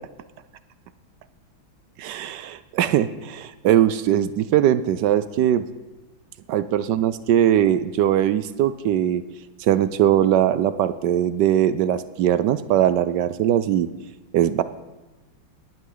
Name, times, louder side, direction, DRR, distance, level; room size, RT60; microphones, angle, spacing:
voice 1, 2.0-5.6 6.5-9.2 9.6-13.9 14.3-14.6, right 11 dB, 75° right, 14 dB, 1.0 m, -20 dB
18.5 x 11.0 x 3.9 m, 1.1 s
omnidirectional pair, 2.3 m